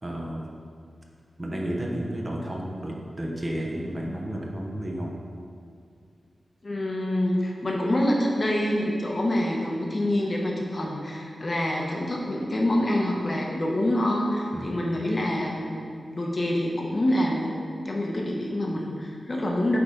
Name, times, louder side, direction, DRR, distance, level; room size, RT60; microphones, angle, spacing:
voice 1, 0.0-0.6 1.4-5.2 14.5-14.8, right 1 dB, 25° right, -1 dB, 0.9 m, -32 dB
voice 2, 6.6-15.8 16.1-17.6 17.8-19.8, left 1 dB, 35° left, -1 dB, 1.0 m, -26 dB
8.4 x 3.8 x 5.0 m, 2.3 s
wide cardioid pair, 125°, 0 cm